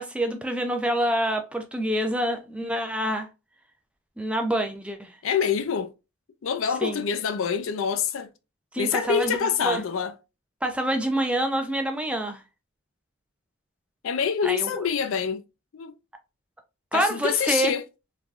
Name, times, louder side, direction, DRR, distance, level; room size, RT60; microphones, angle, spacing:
voice 1, 0.0-3.3 4.2-5.2 6.8-7.0 8.7-9.8 10.6-12.4 14.4-14.9 16.9-17.8, right 1 dB, 5° right, 0.3 m, -27 dB
voice 2, 5.2-5.9 6.4-8.3 8.8-10.1 14.0-15.4 15.7-15.9 16.9-17.8, left 7 dB, 70° left, 0.4 m, -26 dB
3.3 x 2.2 x 2.4 m
head